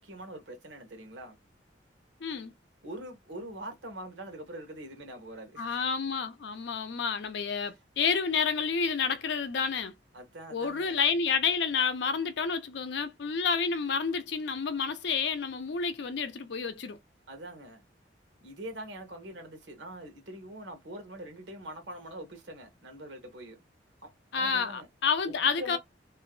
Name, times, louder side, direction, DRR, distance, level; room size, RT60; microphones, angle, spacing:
voice 1, 0.0-1.4 2.8-5.8 10.1-11.0 17.3-17.8 18.4-23.6 24.0-24.9 25.3-25.8, right 1 dB, 85° right, 0.9 m, -43 dB
voice 2, 2.2-2.5 5.6-9.9 10.5-17.0 24.3-25.8, left 5 dB, 70° left, 0.5 m, -29 dB
2.5 x 2.1 x 2.4 m
head